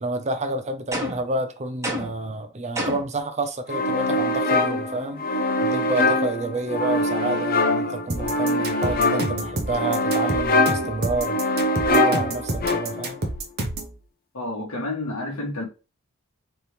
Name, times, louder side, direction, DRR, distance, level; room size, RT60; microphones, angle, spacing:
voice 1, 0.0-5.3 5.6-11.4 11.9-13.2, right 2 dB, 30° right, 0.5 m, -29 dB
sound 1, 0.9-1.3 1.8-2.3 2.7-3.2, equal, 15° right, 1.1 m, -29 dB
sound 2, 3.7-13.2, left 2 dB, 40° left, 0.7 m, -23 dB
sound 3, 8.1-13.9, right 2 dB, 45° right, 1.0 m, -29 dB
voice 2, 14.3-15.6, left 2 dB, 70° left, 2.0 m, -30 dB
4.1 x 3.7 x 3.2 m
head